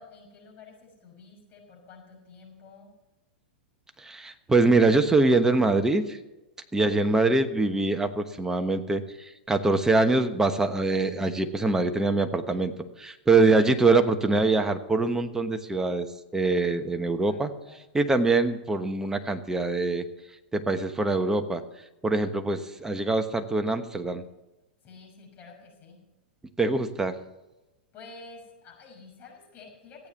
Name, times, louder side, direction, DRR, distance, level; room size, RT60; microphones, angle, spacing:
voice 1, 0.0-2.9 17.2-17.8 24.8-26.0 27.9-30.1, left 4 dB, 30° left, -2 dB, 6.2 m, -49 dB
voice 2, 4.0-6.2 6.7-16.1 16.3-17.5 17.9-20.0 20.5-21.6 22.0-24.2 26.6-27.2, right 3 dB, 10° right, 7 dB, 1.1 m, -24 dB
15.5 x 8.7 x 7.3 m, 1.0 s
hypercardioid pair, 120°, 6 cm